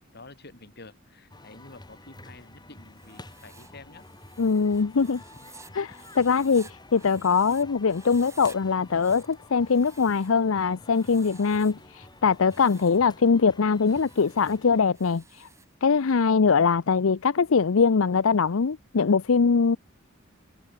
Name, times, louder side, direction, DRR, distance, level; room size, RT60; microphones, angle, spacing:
voice 1, 0.0-4.0 5.3-5.5, left 2 dB, 55° left, 4.2 m, -49 dB
sound 1, 1.3-14.8, left 2 dB, 20° left, 4.2 m, -49 dB
Writing, 2.9-7.6 7.9-8.6 8.9-10.4 10.9-11.8 12.3-13.0 13.7-15.7, right 4 dB, 15° right, 4.9 m, -53 dB
voice 2, 4.4-5.2 5.7-15.5 15.8-19.8, left 5 dB, 85° left, 0.6 m, -22 dB
head